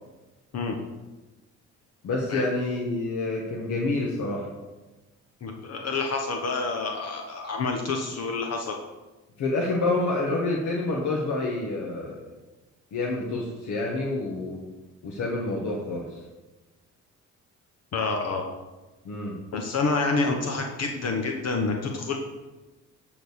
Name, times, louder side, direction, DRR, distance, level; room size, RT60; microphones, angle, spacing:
voice 1, 2.0-4.5 9.4-12.2 12.9-14.6 15.0-16.2 19.0-19.4, left 2 dB, 75° left, -2 dB, 1.4 m, -28 dB
voice 2, 5.4-8.8 17.9-18.5 19.5-22.2, left 3 dB, 55° left, 2 dB, 1.2 m, -28 dB
11.5 x 3.9 x 6.4 m, 1.1 s
cardioid pair, 90°, 30 cm